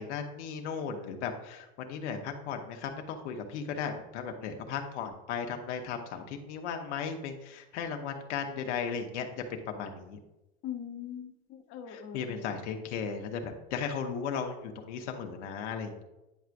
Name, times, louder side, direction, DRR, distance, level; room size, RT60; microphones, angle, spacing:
voice 1, 0.0-9.3 9.7-10.2 11.9-16.0, left 6 dB, 85° left, 4 dB, 0.9 m, -36 dB
voice 2, 10.6-12.6, left 9 dB, 40° left, 4 dB, 0.7 m, -42 dB
9.4 x 4.6 x 2.5 m, 0.95 s
supercardioid pair, 130°, 34 cm